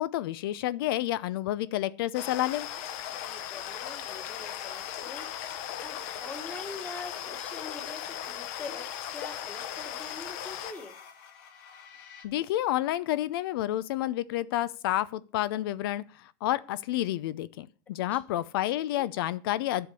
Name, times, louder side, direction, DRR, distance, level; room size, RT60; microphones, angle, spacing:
voice 1, 0.0-2.7 12.2-19.9, left 14 dB, 80° left, 0.6 m, -30 dB
Ambience-Wildlife Duncan Southern Ontario, 2.1-10.7, left 10 dB, 50° left, 1.0 m, -38 dB
voice 2, 3.1-10.9 18.1-18.4 18.9-19.1, left 3 dB, 10° left, 1.3 m, -44 dB
sound 1, 4.1-12.3, left 8 dB, 65° left, 2.2 m, -51 dB
9.9 x 7.8 x 6.8 m
supercardioid pair, 175°, 12 cm